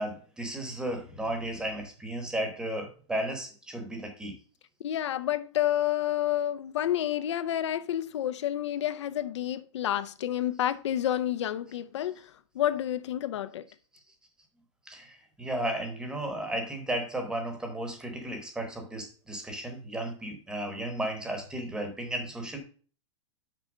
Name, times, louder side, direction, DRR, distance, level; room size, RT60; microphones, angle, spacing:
voice 1, 0.0-4.4 14.9-22.6, right 1 dB, 5° right, 0.9 m, -34 dB
voice 2, 4.8-13.6, left 11 dB, 65° left, 0.5 m, -29 dB
6.1 x 4.4 x 6.1 m
supercardioid pair, 165°, 16 cm